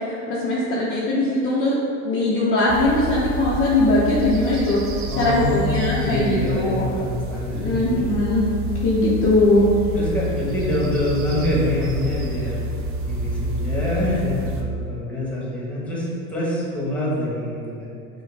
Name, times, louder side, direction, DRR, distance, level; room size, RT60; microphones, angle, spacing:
voice 1, 0.0-1.8 2.0-6.9 7.5-8.4 8.8-9.6, left 2 dB, 30° left, -7 dB, 0.7 m, -20 dB
sound 1, 2.7-14.6, right 1 dB, 30° right, 0.5 m, -29 dB
voice 2, 5.1-8.1 9.9-12.6 13.1-17.9, left 1 dB, 5° left, -6 dB, 1.3 m, -25 dB
5.8 x 2.3 x 3.3 m, 2.5 s
hypercardioid pair, 90°, 43 cm